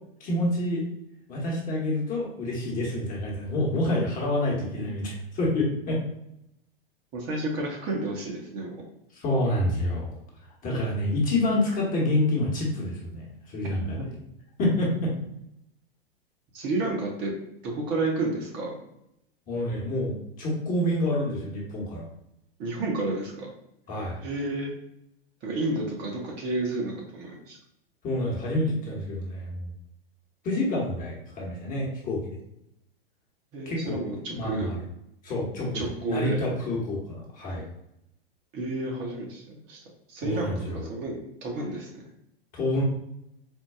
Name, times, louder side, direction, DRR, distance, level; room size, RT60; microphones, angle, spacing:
voice 1, 0.2-0.8 1.3-6.0 9.2-10.1 10.6-14.0 14.6-15.1 19.5-22.0 23.9-24.2 28.0-29.7 30.4-32.4 33.7-34.0 34.3-34.8 35.2-37.7 40.2-40.9 42.5-42.8, left 1 dB, 25° left, -3 dB, 1.1 m, -28 dB
voice 2, 7.1-8.7 13.6-14.1 16.5-17.3 17.6-18.7 22.6-23.5 24.2-24.7 25.4-27.6 33.5-34.7 35.7-36.4 38.5-39.8 40.1-40.5 40.8-42.1, right 2 dB, 35° right, -1 dB, 0.9 m, -31 dB
4.5 x 2.2 x 2.3 m, 0.80 s
figure-of-eight pair, 100°, 30 cm